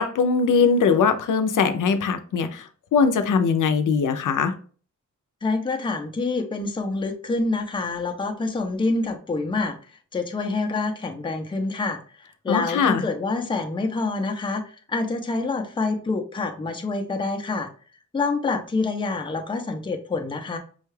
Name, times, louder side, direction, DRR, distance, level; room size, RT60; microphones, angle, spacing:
voice 1, 0.0-4.5 12.5-13.0, left 5 dB, 80° left, 8 dB, 0.5 m, -21 dB
voice 2, 5.4-9.8 10.1-14.6 14.9-17.7 18.1-20.6, left 3 dB, 15° left, 4 dB, 0.5 m, -27 dB
5.4 x 2.3 x 3.1 m, 0.41 s
wide cardioid pair, 175°, 31 cm